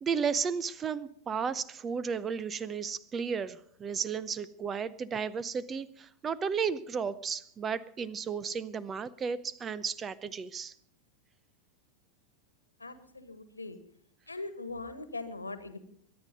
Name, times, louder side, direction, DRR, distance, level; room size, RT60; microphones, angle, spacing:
voice 1, 0.0-10.7, right 6 dB, 20° right, 20 dB, 0.7 m, -33 dB
voice 2, 12.8-13.8 14.3-15.8, left 3 dB, 80° left, 11 dB, 1.6 m, -41 dB
23.0 x 9.9 x 5.3 m, 0.64 s
figure-of-eight pair, 90°, 0 cm